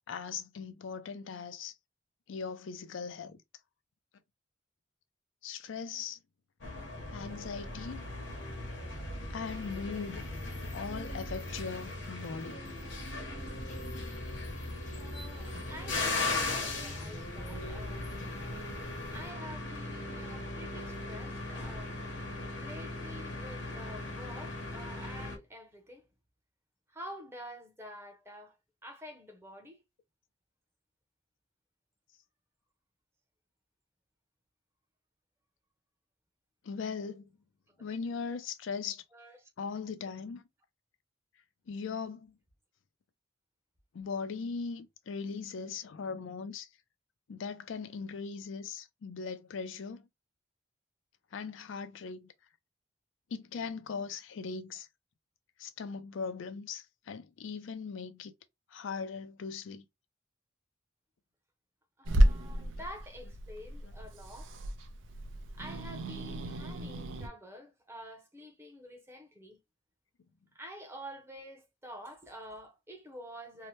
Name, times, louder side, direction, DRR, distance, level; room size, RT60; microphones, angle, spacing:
voice 1, 0.1-1.7 2.3-3.4 5.4-6.2 7.1-8.0 9.3-10.3 10.7-12.6 36.6-37.3 37.8-39.0 39.6-40.4 41.7-42.3 43.9-46.7 47.3-50.1 51.3-52.3 53.3-54.9 55.6-58.3 58.7-59.8, left 5 dB, 90° left, 0.4 m, -39 dB
sound 1, 6.6-25.4, left 2 dB, 70° left, 0.8 m, -38 dB
sound 2, 13.4-19.3, left 1 dB, 40° left, 0.6 m, -47 dB
voice 2, 14.9-18.5 19.1-22.0 22.5-26.1 26.9-28.6 28.8-29.8 37.7-38.0 39.1-39.5 62.0-64.5 65.5-69.6 70.5-73.7, equal, 15° right, 0.6 m, -48 dB
Growling / Hiss, 62.0-67.3, right 1 dB, 85° right, 0.5 m, -31 dB
2.8 x 2.1 x 3.0 m
head